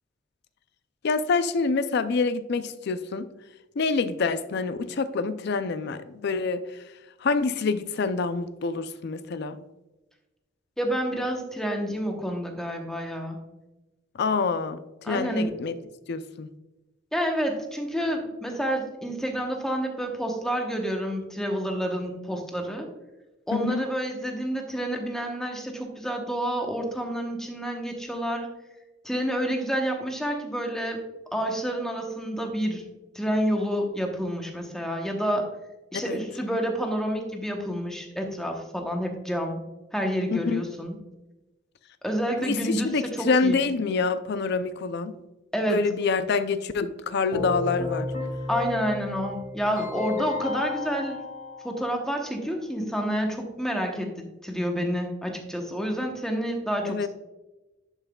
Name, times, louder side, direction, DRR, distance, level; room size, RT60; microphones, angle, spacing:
voice 1, 1.0-3.3 3.8-6.8 7.2-9.6 14.1-14.8 15.1-15.8 16.1-16.5 23.5-23.9 36.1-36.2 40.3-40.6 42.4-45.2 45.7-48.1 56.9-57.1, left 4 dB, 55° left, 12 dB, 0.4 m, -26 dB
voice 2, 10.8-13.4 15.0-15.5 17.1-22.9 23.5-28.5 29.0-31.0 31.3-32.8 33.1-35.5 35.9-39.6 39.9-41.0 42.0-43.6 45.5-45.9 48.5-51.2 51.6-57.1, equal, 5° left, 2 dB, 0.9 m, -29 dB
Keyboard (musical), 47.3-52.3, left 3 dB, 35° left, 1.9 m, -33 dB
10.5 x 5.6 x 2.3 m, 1.1 s
head